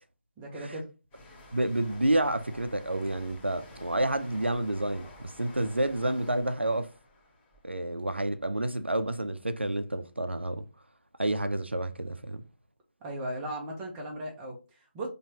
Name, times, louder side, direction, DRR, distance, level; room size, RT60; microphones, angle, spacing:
voice 1, 0.4-0.9 13.0-15.1, right 1 dB, 10° right, 0.9 m, -37 dB
sound 1, 1.1-8.6 8.9-9.2, left 1 dB, 15° left, 1.1 m, -51 dB
voice 2, 1.5-6.9 7.6-10.7 11.2-12.4, right 1 dB, 90° right, 0.6 m, -29 dB
4.3 x 3.1 x 2.7 m
figure-of-eight pair, 155°, 6 cm